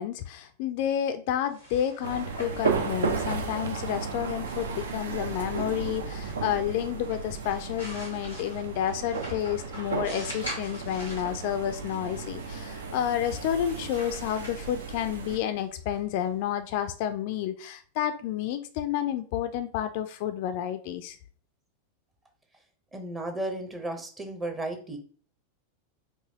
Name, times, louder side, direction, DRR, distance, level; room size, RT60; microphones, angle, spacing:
voice 1, 0.0-21.2, left 10 dB, 50° left, 9 dB, 0.3 m, -30 dB
sound 1, 1.3-17.0, equal, 90° right, 1.8 m, -46 dB
sound 2, 2.0-15.4, right 4 dB, 65° right, 0.6 m, -34 dB
voice 2, 22.9-25.0, right 1 dB, 15° right, 4 dB, 0.8 m, -34 dB
4.7 x 2.7 x 2.8 m, 0.43 s
figure-of-eight pair, 90°, 0 cm